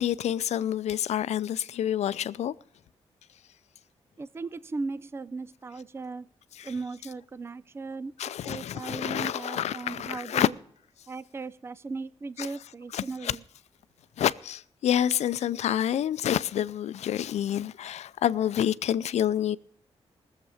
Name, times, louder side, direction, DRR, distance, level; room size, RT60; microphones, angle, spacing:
voice 1, 0.0-2.5 6.6-6.7 8.2-10.5 12.4-12.5 12.9-13.3 14.2-19.6, left 10 dB, 80° left, 0.5 m, -28 dB
voice 2, 4.2-6.3 6.6-10.6 11.1-13.4, right 3 dB, 20° right, 0.4 m, -37 dB
19.5 x 7.5 x 4.9 m
cardioid pair, 95°, 11 cm